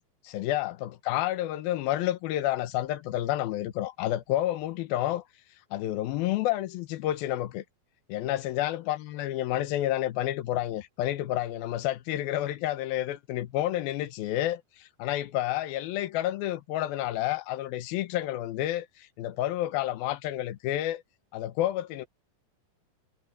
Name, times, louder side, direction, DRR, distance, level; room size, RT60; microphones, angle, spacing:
voice 1, 0.0-5.2 5.7-7.6 8.1-21.0 21.3-22.1, left 14 dB, 80° left, 2.8 m, -30 dB
omnidirectional pair, 4.3 m